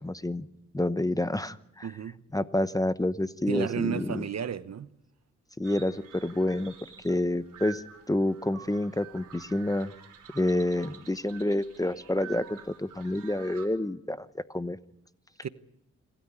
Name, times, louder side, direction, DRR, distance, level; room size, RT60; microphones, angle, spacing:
voice 1, 0.0-0.5 0.7-1.9 2.3-4.2 5.6-6.7 7.0-7.8 8.1-9.9 10.3-14.8, left 1 dB, 10° left, 0.9 m, -28 dB
voice 2, 1.8-2.2 3.5-4.9 15.4-15.5, right 8 dB, 55° right, 1.0 m, -32 dB
sound 1, 5.6-13.7, right 8 dB, 90° right, 3.7 m, -49 dB
26.5 x 13.5 x 8.9 m
cardioid pair, 65°, 31 cm